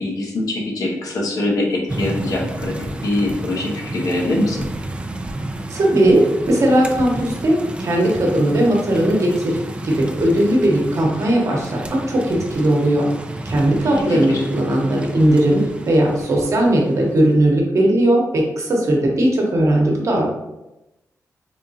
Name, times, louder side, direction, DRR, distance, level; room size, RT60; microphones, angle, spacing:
voice 1, 0.0-2.7 3.0-4.6 13.8-14.4, left 2 dB, 70° left, -1 dB, 0.9 m, -23 dB
sound 1, 1.9-17.4, right 1 dB, 20° right, 0.3 m, -31 dB
voice 2, 5.7-9.6 9.8-11.8 12.1-13.1 13.4-20.3, right 1 dB, 55° right, -1 dB, 0.9 m, -18 dB
3.5 x 3.5 x 2.7 m, 0.95 s
wide cardioid pair, 125°, 6 cm